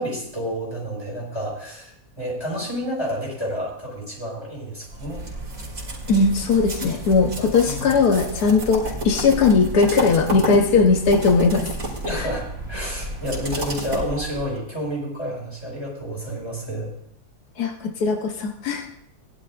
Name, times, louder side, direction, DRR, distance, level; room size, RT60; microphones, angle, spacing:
voice 1, 0.0-5.2 7.6-7.8 12.0-16.9, equal, 15° left, -4 dB, 5.4 m, -30 dB
sound 1, 4.8-14.6, right 1 dB, 50° right, 2.9 m, -31 dB
voice 2, 6.1-11.6 17.6-18.8, left 4 dB, 90° left, 3 dB, 1.5 m, -19 dB
18.5 x 11.5 x 2.5 m, 0.71 s
omnidirectional pair, 1.6 m